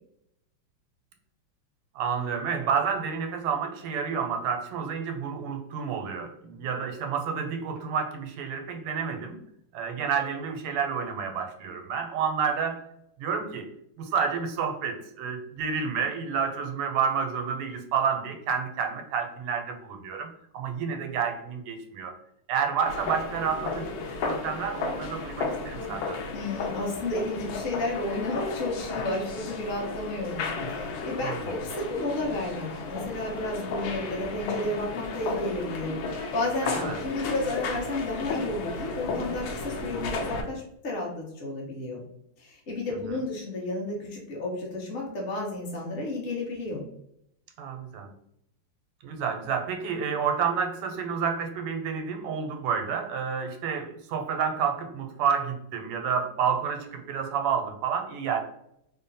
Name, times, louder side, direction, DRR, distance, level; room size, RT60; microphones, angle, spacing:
voice 1, 1.9-9.4 9.7-12.8 13.2-13.7 14.0-22.1 22.5-23.9 24.2-26.2 31.2-31.5 36.6-37.0 43.1-43.2 47.6-48.1 49.0-58.4, right 6 dB, 90° right, 4 dB, 1.6 m, -29 dB
sound 1, 22.9-40.4, left 4 dB, 75° left, 1.3 m, -33 dB
voice 2, 26.3-36.7 37.0-42.0 42.4-46.8, left 2 dB, 45° left, -3 dB, 0.7 m, -32 dB
3.6 x 2.1 x 4.0 m, 0.76 s
omnidirectional pair, 2.4 m